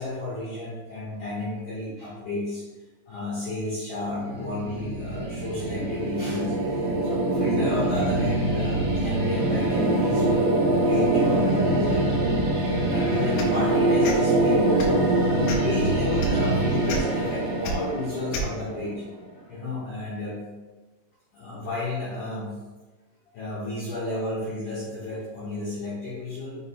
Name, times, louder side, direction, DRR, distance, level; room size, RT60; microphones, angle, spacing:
voice 1, 0.0-2.6 3.1-10.5 10.9-12.3 12.7-14.7 15.0-19.0 19.5-20.4 21.3-22.6 23.3-26.6, left 2 dB, 70° left, -9 dB, 2.0 m, -32 dB
sound 1, 4.0-19.1, right 1 dB, 60° right, 2.1 m, -24 dB
sound 2, 13.4-13.6 14.0-14.2 14.7-15.0 15.5-15.7 16.2-16.3 16.9-17.0 17.6-17.7 18.3-18.5, equal, 90° left, 3.6 m, -31 dB
7.2 x 6.4 x 2.2 m, 1.2 s
omnidirectional pair, 5.8 m